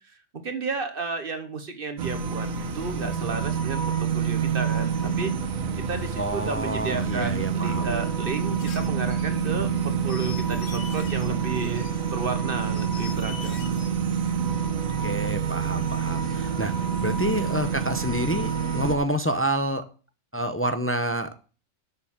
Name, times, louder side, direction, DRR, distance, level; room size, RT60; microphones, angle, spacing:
voice 1, 0.1-5.3 5.8-13.7 17.0-17.2, right 4 dB, 45° right, 8 dB, 1.3 m, -33 dB
sound 1, 2.0-19.0, right 7 dB, 85° right, 1.5 m, -27 dB
voice 2, 6.2-7.9 15.0-16.7 17.0-19.8 20.3-21.3, right 1 dB, 15° left, 8 dB, 0.5 m, -28 dB
sound 2, 8.6-11.3 11.6-14.3, left 6 dB, 70° left, 1.3 m, -44 dB
7.0 x 6.7 x 7.3 m, 0.37 s
omnidirectional pair, 1.4 m